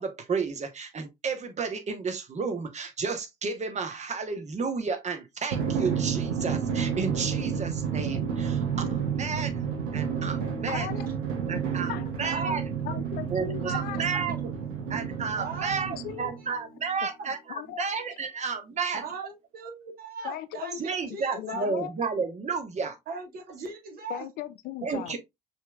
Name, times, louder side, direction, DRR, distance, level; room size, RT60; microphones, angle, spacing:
voice 1, 0.0-8.6 8.9-9.6 9.9-10.9 11.5-12.6 13.3-14.5 14.9-19.0 20.8-23.0 24.8-25.2, right 5 dB, 40° right, 1.2 m, -32 dB
Drum, 5.5-16.5, right 7 dB, 75° right, 1.0 m, -30 dB
voice 2, 10.7-11.1 11.9-12.1 12.8-14.1 16.0-16.3 17.5-17.8 20.2-20.8 21.3-21.9 24.1-25.2, left 12 dB, 60° left, 0.5 m, -37 dB
voice 3, 12.2-12.6 14.1-14.3 15.3-15.9 16.4-16.5 17.0-17.3 18.9-21.7 23.1-24.3, right 4 dB, 55° right, 1.6 m, -39 dB
5.6 x 3.3 x 2.4 m
figure-of-eight pair, 50°, 18 cm